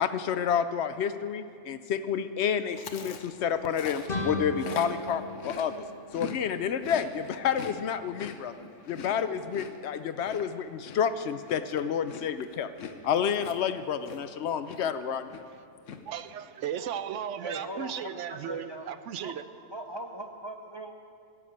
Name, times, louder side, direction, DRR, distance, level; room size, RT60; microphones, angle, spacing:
voice 1, 0.0-5.8 6.1-8.5 8.9-12.7 13.0-15.4, left 8 dB, 65° left, 0.8 m, -29 dB
Chewing mastication, 2.7-6.4 6.7-14.4 14.7-15.0 15.3-16.0, left 6 dB, 85° left, 1.2 m, -43 dB
sound 1, 4.1-6.8, left 1 dB, 50° left, 1.4 m, -36 dB
voice 2, 16.1-19.4, right 9 dB, 75° right, 0.9 m, -36 dB
voice 3, 17.4-18.9 19.2-19.3 19.7-21.0, right 1 dB, 35° right, 0.4 m, -40 dB
14.5 x 7.3 x 8.5 m
omnidirectional pair, 1.3 m